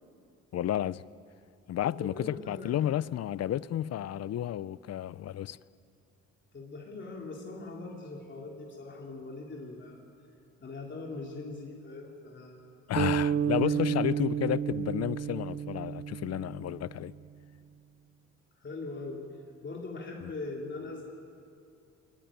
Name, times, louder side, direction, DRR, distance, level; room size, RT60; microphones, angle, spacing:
voice 1, 0.5-1.0 1.7-5.6 12.9-17.1 20.2-20.3, left 11 dB, 55° left, 0.6 m, -31 dB
voice 2, 1.8-3.0 6.5-10.0 10.6-12.9 13.6-13.7 18.6-21.0, left 3 dB, 40° left, 3.4 m, -41 dB
sound 1, 13.0-17.2, right 8 dB, 40° right, 0.7 m, -31 dB
21.5 x 21.5 x 9.0 m
cardioid pair, 90°, 30 cm